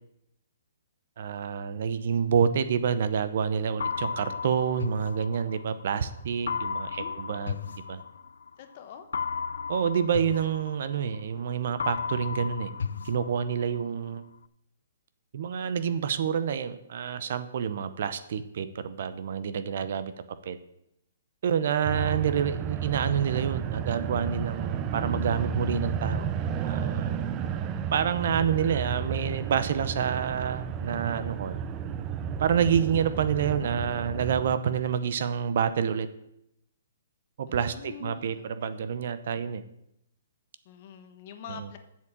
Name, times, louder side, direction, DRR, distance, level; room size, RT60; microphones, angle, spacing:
voice 1, 1.2-7.6 7.9-8.0 9.7-12.7 13.0-14.2 15.3-20.1 20.4-20.6 21.4-26.3 26.6-27.2 27.9-31.6 32.4-36.1 37.4-39.6, right 7 dB, 45° right, 13 dB, 0.7 m, -28 dB
sound 1, 3.8-5.9 6.5-8.5 9.1-11.4 11.8-13.9, left 6 dB, 80° left, 0.5 m, -34 dB
voice 2, 8.6-9.1 37.5-38.9 40.6-41.8, left 8 dB, 30° left, 7 dB, 1.0 m, -45 dB
sound 2, 21.8-34.6, right 7 dB, 15° right, 0.5 m, -32 dB
8.3 x 7.4 x 7.3 m, 0.79 s
hypercardioid pair, 175°, 0 cm